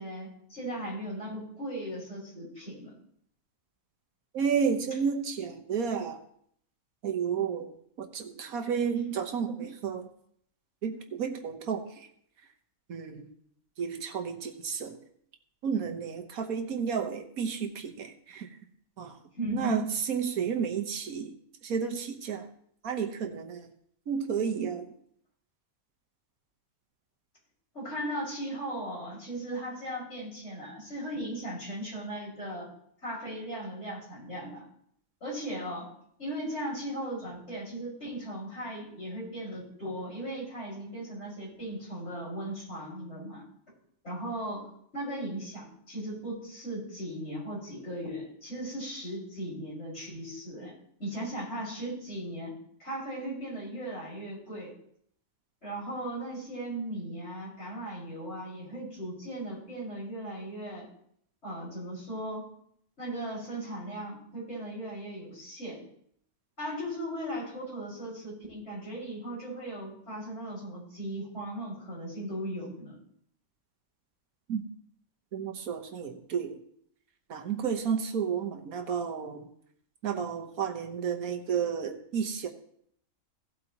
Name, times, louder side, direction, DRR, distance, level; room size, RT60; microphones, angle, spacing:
voice 1, 0.0-2.9 19.4-19.9 27.7-32.7 33.0-34.6 35.2-35.9 36.2-43.4 44.0-44.6 44.9-50.7 51.0-52.5 52.8-54.7 55.6-60.9 61.4-62.4 63.0-65.8 66.6-73.0, right 1 dB, 50° left, -6 dB, 5.8 m, -37 dB
voice 2, 4.3-6.2 7.0-7.7 8.0-10.1 10.8-12.1 12.9-13.3 13.8-15.0 15.6-18.5 19.0-19.2 19.5-21.3 21.6-22.5 22.8-23.7 24.1-24.9 74.5-74.6 75.3-76.6 77.3-79.5 80.0-82.5, right 7 dB, 85° right, 4 dB, 1.5 m, -31 dB
17.0 x 8.2 x 2.9 m, 0.67 s
omnidirectional pair, 1.5 m